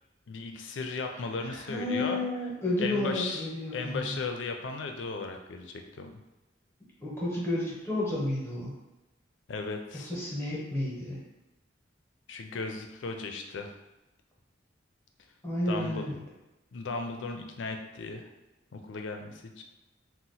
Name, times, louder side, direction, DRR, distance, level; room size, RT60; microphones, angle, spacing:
voice 1, 0.3-2.2 2.8-6.2 9.5-10.1 12.3-13.7 15.7-16.1 16.7-18.3 18.7-19.6, left 4 dB, 70° left, 4 dB, 0.4 m, -36 dB
voice 2, 1.5-4.1 7.0-8.7 10.1-11.2 15.4-16.2, left 1 dB, 15° left, -6 dB, 0.9 m, -31 dB
2.8 x 2.1 x 4.0 m, 1.0 s
head